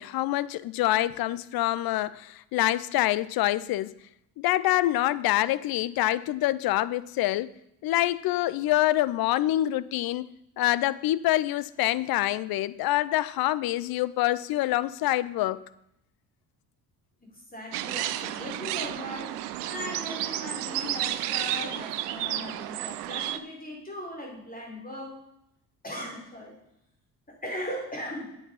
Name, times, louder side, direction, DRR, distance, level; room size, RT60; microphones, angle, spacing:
voice 1, 0.0-3.9 4.4-7.5 7.8-10.3 10.6-15.6, left 15 dB, 50° left, 18 dB, 0.6 m, -26 dB
voice 2, 17.2-25.2 25.8-26.6 27.3-28.4, left 1 dB, 20° left, -1 dB, 4.8 m, -38 dB
sound 1, 17.7-23.4, right 13 dB, 80° right, 0.6 m, -32 dB
8.4 x 8.3 x 5.5 m, 0.80 s
hypercardioid pair, 50°, 46 cm